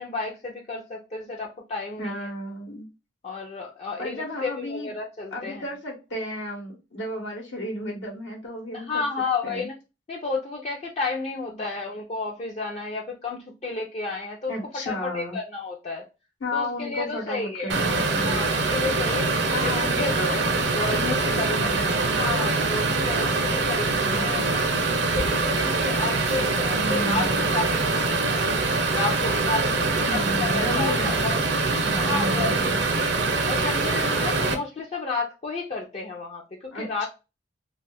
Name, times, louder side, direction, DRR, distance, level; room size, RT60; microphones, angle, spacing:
voice 1, 0.0-2.3 3.2-5.6 8.7-9.7 10.1-14.5 14.9-16.0 16.5-17.7 18.2-20.3 20.8-21.7 22.2-24.6 25.1-28.5 28.9-31.4 31.9-33.2 33.5-37.1, left 3 dB, 35° left, 0.4 m, -32 dB
voice 2, 2.0-2.9 4.0-4.9 5.3-9.1 9.4-9.7 11.5-11.6 14.5-15.4 16.4-18.4 19.5-22.1 24.0-24.5 26.7-27.4 30.0-31.3 31.8-32.8 36.7-37.1, left 1 dB, 85° left, 1.0 m, -33 dB
sound 1, 17.7-34.5, right 3 dB, 70° right, 0.6 m, -24 dB
2.4 x 2.3 x 3.3 m
head